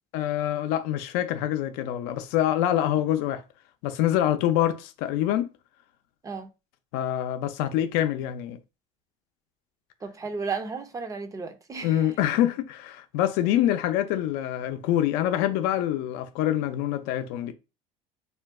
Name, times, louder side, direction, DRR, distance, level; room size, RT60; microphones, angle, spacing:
voice 1, 0.1-3.4 3.8-5.5 6.9-8.6 11.8-17.5, left 12 dB, 80° left, 0.5 m, -25 dB
voice 2, 10.0-11.9, right 4 dB, 20° right, 0.5 m, -33 dB
2.4 x 2.2 x 3.6 m
cardioid pair, 125°, 16 cm